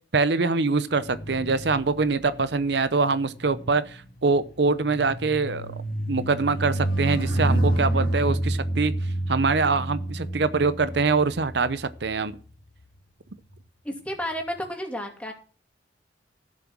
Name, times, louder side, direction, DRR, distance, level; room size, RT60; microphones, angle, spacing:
voice 1, 0.1-5.7 6.1-12.4, right 4 dB, 65° right, 0.7 m, -24 dB
sound 1, 0.9-12.5 13.3-13.6, right 1 dB, 50° left, 2.3 m, -29 dB
voice 2, 13.8-15.3, equal, 5° left, 2.5 m, -31 dB
15.0 x 7.6 x 6.1 m
head